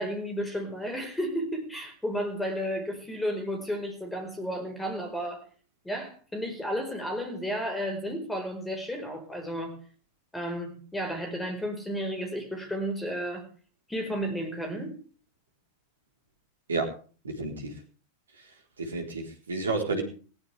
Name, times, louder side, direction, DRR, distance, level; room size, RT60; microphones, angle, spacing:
voice 1, 0.0-5.4 5.8-9.8 10.3-13.5 13.9-15.0, equal, 5° left, 5 dB, 4.8 m, -32 dB
voice 2, 17.2-17.7 18.8-20.0, right 3 dB, 70° right, 3 dB, 4.1 m, -30 dB
20.5 x 16.0 x 3.5 m, 0.40 s
figure-of-eight pair, 90°, 0 cm